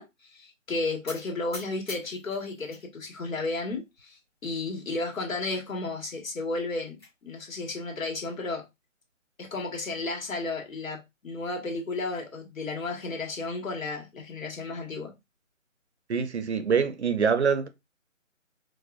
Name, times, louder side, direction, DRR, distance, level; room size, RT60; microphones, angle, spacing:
voice 1, 0.0-7.0 7.2-8.6 9.4-15.1, left 3 dB, 85° left, 1.5 m, -33 dB
sound 1, 1.1-2.8 3.2-3.9 4.4-4.5 4.8-4.9 5.3-5.4 6.5-7.1, left 2 dB, 20° left, 0.9 m, -45 dB
voice 2, 16.1-17.7, right 6 dB, 55° right, 0.6 m, -25 dB
4.7 x 2.1 x 2.4 m
hypercardioid pair, 175°, 40 cm